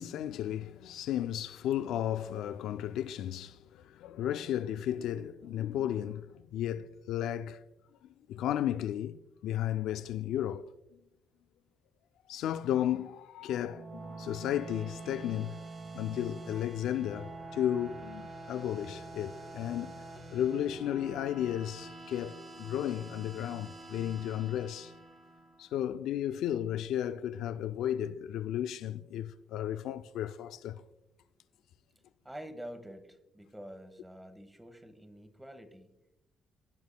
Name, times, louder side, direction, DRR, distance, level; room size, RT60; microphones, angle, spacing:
voice 1, 0.0-7.6 8.3-10.6 12.3-15.6 15.9-20.0 20.3-24.9 25.6-30.8, left 11 dB, 85° left, 0.3 m, -34 dB
sound 1, 13.5-25.8, right 2 dB, 45° right, 1.5 m, -46 dB
voice 2, 32.2-35.9, equal, 10° right, 1.2 m, -47 dB
16.5 x 7.0 x 2.2 m
cardioid pair, 90°, 0 cm